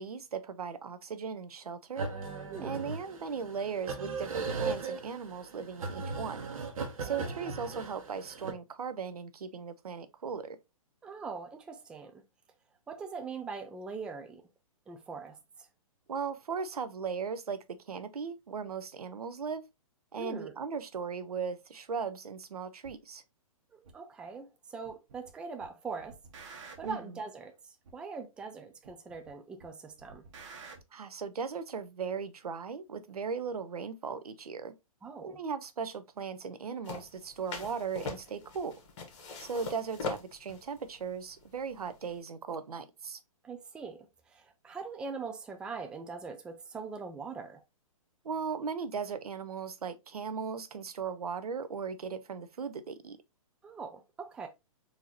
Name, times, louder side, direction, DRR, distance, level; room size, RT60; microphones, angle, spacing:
voice 1, 0.0-2.1 2.6-6.5 7.0-10.6 16.1-19.7 20.1-23.2 26.8-27.0 30.9-34.7 35.2-38.8 39.4-43.2 48.2-53.2, right 6 dB, 90° right, 0.6 m, -37 dB
sound 1, 2.0-8.5, right 4 dB, 70° right, 1.0 m, -37 dB
voice 2, 2.5-2.9 7.0-7.3 11.0-12.2 12.9-14.4 14.9-15.7 20.1-20.6 23.7-26.2 26.8-30.2 35.0-35.4 43.4-47.6 53.6-54.5, right 4 dB, 5° right, 0.3 m, -42 dB
sound 2, 22.8-23.0 23.8-23.9 24.8-25.3 25.6-27.1 27.8-27.9 28.8-29.3 29.6-30.8, right 4 dB, 55° right, 1.1 m, -50 dB
sound 3, 36.8-42.2, left 3 dB, 55° left, 1.3 m, -41 dB
3.9 x 2.7 x 2.9 m
hypercardioid pair, 135°, 19 cm